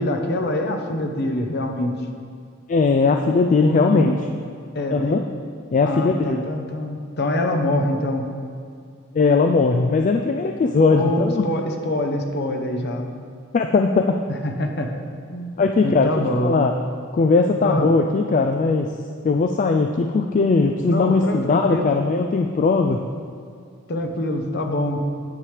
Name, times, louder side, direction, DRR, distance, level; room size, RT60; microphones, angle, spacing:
voice 1, 0.0-1.9 3.6-4.1 4.7-5.2 5.8-8.3 10.9-13.1 14.3-14.9 15.3-16.7 17.6-17.9 20.9-21.9 23.9-25.0, left 1 dB, 55° left, 4 dB, 0.8 m, -25 dB
voice 2, 2.7-4.1 4.9-5.2 5.7-6.4 9.1-11.4 13.5-14.1 15.6-16.1 16.4-16.7 17.1-18.9 19.2-23.0, left 4 dB, 40° left, 4 dB, 0.3 m, -19 dB
9.6 x 7.2 x 3.3 m, 2.2 s
head